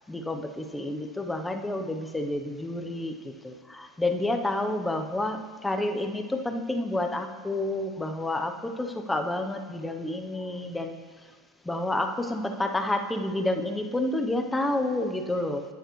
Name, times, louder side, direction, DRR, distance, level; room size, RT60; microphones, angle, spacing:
voice 1, 0.1-11.0 11.6-15.6, left 1 dB, 10° left, 5 dB, 0.7 m, -29 dB
11.0 x 9.3 x 3.1 m, 1.4 s
supercardioid pair, 125°, 0 cm